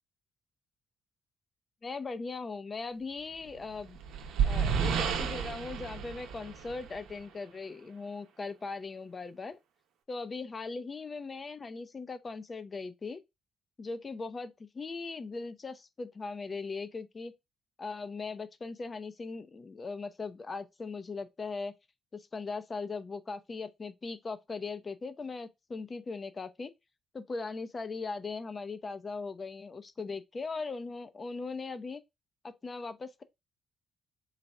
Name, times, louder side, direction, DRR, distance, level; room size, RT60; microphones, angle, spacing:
voice 1, 1.8-4.0 4.4-9.6 10.1-13.2 13.8-17.3 17.8-21.7 22.1-26.7 27.1-32.0 32.4-33.2, left 4 dB, 35° left, 0.6 m, -39 dB
sound 1, 3.6-7.2, right 7 dB, 90° right, 0.7 m, -31 dB
4.1 x 2.3 x 4.1 m
cardioid pair, 90°, 0 cm